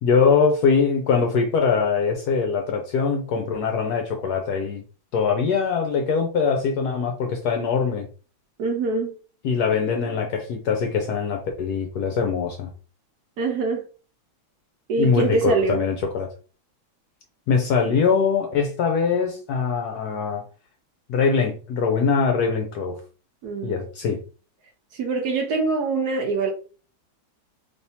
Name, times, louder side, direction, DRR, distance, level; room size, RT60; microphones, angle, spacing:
voice 1, 0.0-4.8 5.1-8.1 9.4-12.7 15.0-16.3 17.5-20.4 21.1-23.0 23.6-24.2, left 5 dB, 70° left, 1.0 m, -22 dB
voice 2, 8.6-9.1 13.4-13.8 14.9-15.8 23.4-23.8 24.9-26.5, right 4 dB, 65° right, 1.1 m, -24 dB
3.4 x 2.7 x 2.7 m
omnidirectional pair, 2.1 m